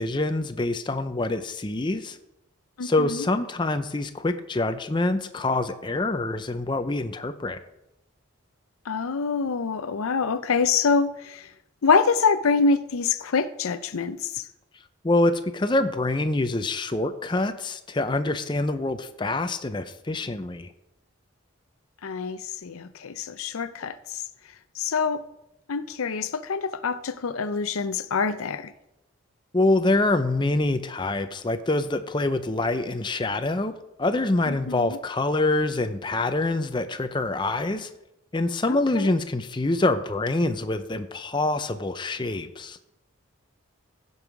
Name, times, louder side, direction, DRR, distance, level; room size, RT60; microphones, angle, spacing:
voice 1, 0.0-2.2 2.8-7.6 15.0-20.7 29.5-33.7 34.0-37.9 38.3-42.8, left 2 dB, 20° left, 0.5 m, -25 dB
voice 2, 2.8-3.2 8.9-11.5 11.8-14.4 22.0-24.2 24.8-25.2 25.7-28.7 34.5-35.0 38.7-39.1, left 5 dB, 90° left, 0.6 m, -25 dB
15.5 x 5.5 x 4.7 m
head